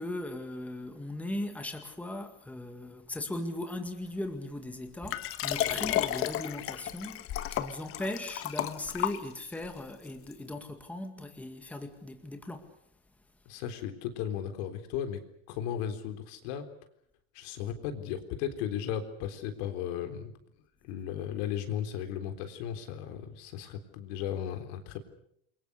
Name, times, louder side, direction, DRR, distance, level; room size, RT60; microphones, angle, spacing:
voice 1, 0.0-12.7, left 1 dB, 5° left, 2.0 m, -38 dB
Liquid, 5.1-9.7 10.3-10.4, left 12 dB, 40° left, 1.5 m, -32 dB
voice 2, 13.5-15.2 15.5-16.7 17.3-20.3 20.8-25.0, left 9 dB, 70° left, 3.8 m, -35 dB
28.5 x 23.0 x 6.7 m
supercardioid pair, 150°, 34 cm